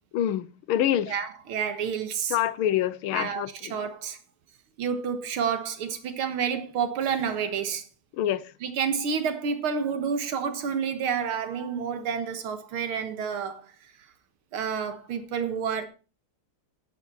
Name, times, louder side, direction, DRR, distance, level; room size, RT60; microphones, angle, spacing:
voice 1, 0.1-1.1 2.3-3.7 8.2-8.4, left 11 dB, 85° left, 1.6 m, -26 dB
voice 2, 1.1-2.4 3.1-4.2 4.8-7.8 8.6-13.6 14.5-15.9, right 7 dB, 90° right, 2.2 m, -29 dB
10.5 x 9.1 x 4.1 m
omnidirectional pair, 2.3 m